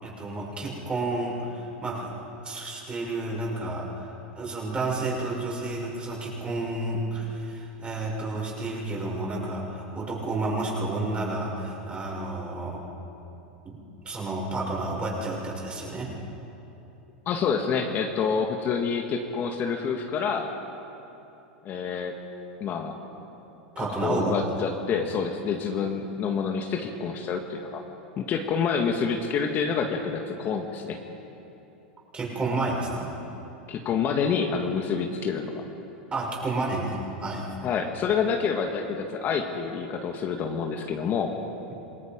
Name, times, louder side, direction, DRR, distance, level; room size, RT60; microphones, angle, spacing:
voice 1, 0.0-2.2 2.4-12.8 13.6-13.8 14.0-16.1 23.7-24.3 32.1-33.1 36.1-37.5, right 2 dB, 20° right, -3 dB, 6.2 m, -31 dB
voice 2, 17.3-20.5 21.7-22.2 22.6-23.0 23.8-27.8 28.2-31.0 33.7-35.6 37.6-41.3, left 6 dB, 40° left, 3 dB, 1.7 m, -27 dB
27.5 x 20.0 x 5.3 m, 2.9 s
hypercardioid pair, 110°, 5 cm